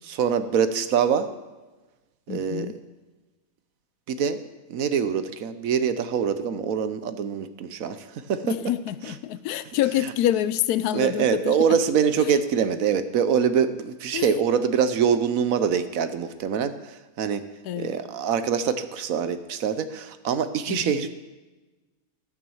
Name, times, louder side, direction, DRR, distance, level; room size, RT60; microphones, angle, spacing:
voice 1, 0.0-1.3 2.3-2.7 4.1-4.4 4.7-8.5 10.9-17.4 17.8-21.1, right 7 dB, 70° right, 11 dB, 1.1 m, -24 dB
voice 2, 2.3-2.8 8.4-11.8 12.2-12.4 14.1-14.3 17.6-18.0 20.7-20.9, left 12 dB, 85° left, 15 dB, 1.1 m, -27 dB
14.0 x 6.3 x 7.1 m, 1.1 s
omnidirectional pair, 1.6 m